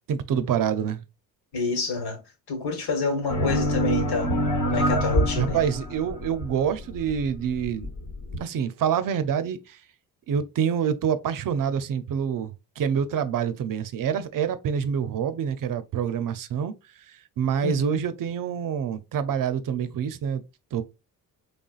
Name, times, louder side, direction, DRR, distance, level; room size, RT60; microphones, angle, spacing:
voice 1, 0.1-1.0 5.4-7.9 8.4-9.8 10.3-16.7 17.1-20.4 20.7-20.8, right 8 dB, 55° right, 0.6 m, -26 dB
voice 2, 1.5-2.2 2.5-4.3 4.6-5.6 17.6-18.0, left 4 dB, 80° left, 1.5 m, -28 dB
sound 1, 3.3-8.4, equal, 50° left, 1.2 m, -26 dB
4.0 x 3.4 x 2.4 m
cardioid pair, 90°, 38 cm